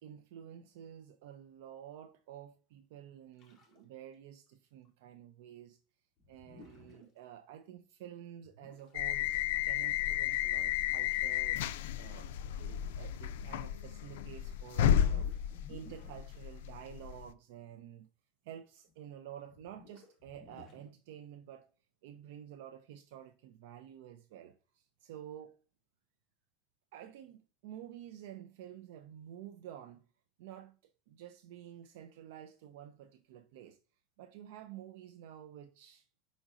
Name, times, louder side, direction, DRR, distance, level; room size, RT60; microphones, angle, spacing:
voice 1, 0.0-5.8 6.3-9.3 9.6-12.3 12.6-15.3 15.7-18.1 18.4-21.7 22.0-25.5 26.9-30.1 30.4-30.8 31.1-33.8 34.2-36.1, right 10 dB, 60° right, 0.4 m, -50 dB
sound 1, 3.4-3.9 4.1-4.2 4.5-4.6 4.8-4.9 6.2-7.0 8.4-9.0 11.2-11.3 12.0-12.1 12.7-13.3 13.7-16.6 18.9-19.0 19.4-20.9, left 3 dB, 20° left, 0.9 m, -58 dB
sound 2, 8.9-17.3, left 11 dB, 80° left, 0.3 m, -33 dB
5.0 x 3.9 x 2.4 m
supercardioid pair, 180°, 0 cm